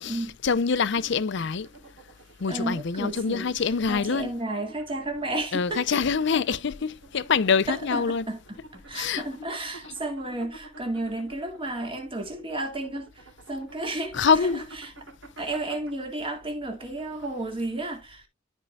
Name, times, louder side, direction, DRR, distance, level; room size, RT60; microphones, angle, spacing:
voice 1, 0.0-1.7 2.4-4.3 5.5-8.3 8.9-9.2 14.1-14.7, left 5 dB, 60° left, 0.5 m, -25 dB
sound 1, 0.8-17.6, right 2 dB, 65° right, 3.9 m, -50 dB
voice 2, 2.5-3.6 3.9-5.8 6.3-6.4 7.7-14.9 15.4-18.3, right 2 dB, 25° right, 2.1 m, -33 dB
13.5 x 4.6 x 2.3 m
head